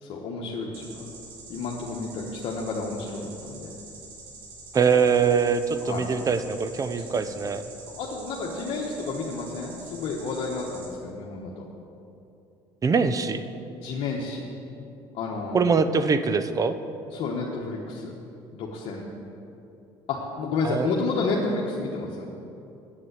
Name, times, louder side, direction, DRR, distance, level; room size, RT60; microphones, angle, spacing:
voice 1, 0.0-1.1 1.5-3.7 5.8-6.1 7.1-7.2 7.9-11.6 13.7-14.4 15.1-15.6 17.1-18.1 18.5-19.1 20.1-22.3, left 3 dB, 65° left, -2 dB, 1.2 m, -31 dB
sound 1, 0.7-10.9, right 3 dB, 75° right, 2.3 m, -45 dB
voice 2, 4.7-7.6 12.8-13.4 15.5-16.7 20.6-20.9, right 5 dB, 35° right, 11 dB, 0.7 m, -23 dB
8.5 x 7.6 x 8.1 m, 2.8 s
supercardioid pair, 90°, 11 cm